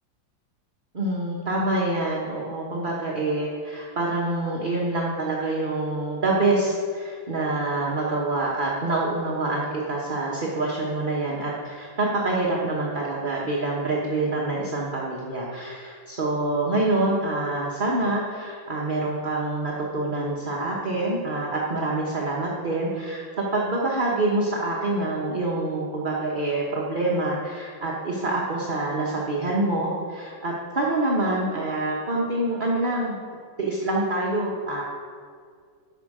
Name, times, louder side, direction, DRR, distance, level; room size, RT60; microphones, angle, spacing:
voice 1, 0.9-33.1 33.6-34.8, right 2 dB, 35° right, -4 dB, 1.0 m, -26 dB
11.5 x 6.5 x 4.9 m, 2.1 s
omnidirectional pair, 2.2 m